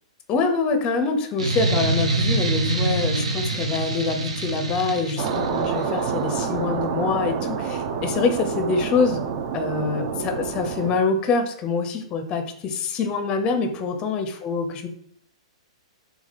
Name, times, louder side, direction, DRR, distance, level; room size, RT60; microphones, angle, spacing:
voice 1, 0.3-9.2 9.5-14.9, left 4 dB, 25° left, 6 dB, 0.5 m, -25 dB
sound 1, 1.4-5.8, right 2 dB, 65° right, 0.7 m, -25 dB
sound 2, 5.2-11.0, right 6 dB, 35° right, 0.5 m, -28 dB
3.4 x 2.4 x 4.0 m, 0.65 s
figure-of-eight pair, 115°, 3 cm